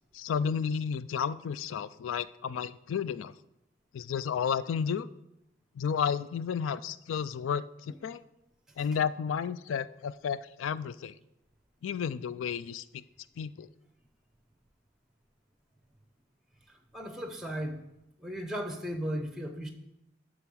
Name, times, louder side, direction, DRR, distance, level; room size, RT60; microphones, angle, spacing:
voice 1, 0.1-3.3 3.9-5.1 5.8-8.2 8.8-11.1 11.8-13.0 13.4-13.7, left 7 dB, 85° left, 16 dB, 0.3 m, -32 dB
voice 2, 16.7-17.8 18.2-19.7, equal, 5° right, 6 dB, 0.6 m, -36 dB
9.0 x 3.9 x 6.2 m, 0.86 s
head